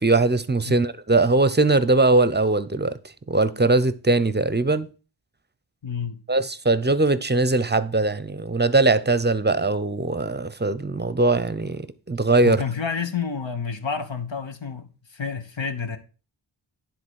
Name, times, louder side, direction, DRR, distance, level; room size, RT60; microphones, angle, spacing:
voice 1, 0.0-2.9 3.3-4.9 6.3-12.6, right 2 dB, 20° right, 0.7 m, -21 dB
voice 2, 5.8-6.2 12.4-16.0, left 6 dB, 70° left, 1.2 m, -29 dB
10.0 x 3.9 x 6.4 m
wide cardioid pair, 45°, 47 cm